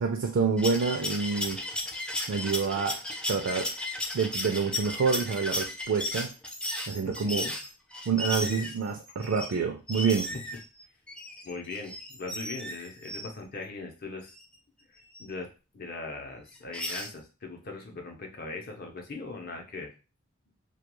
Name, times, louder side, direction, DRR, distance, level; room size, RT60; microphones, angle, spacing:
voice 1, 0.0-1.6 2.3-3.0 3.3-3.7 4.1-6.3 6.9-7.5 8.1-10.3, right 5 dB, 70° right, 4 dB, 0.4 m, -27 dB
sound 1, 0.6-9.6 9.9-13.3 14.4-14.5 15.1-15.3 16.5-17.1, left 1 dB, 5° left, 0.3 m, -35 dB
voice 2, 7.0-7.5 10.3-10.4 11.4-14.3 15.2-15.5 15.7-19.9, left 3 dB, 50° left, 3 dB, 0.7 m, -39 dB
2.3 x 2.2 x 3.0 m, 0.31 s
head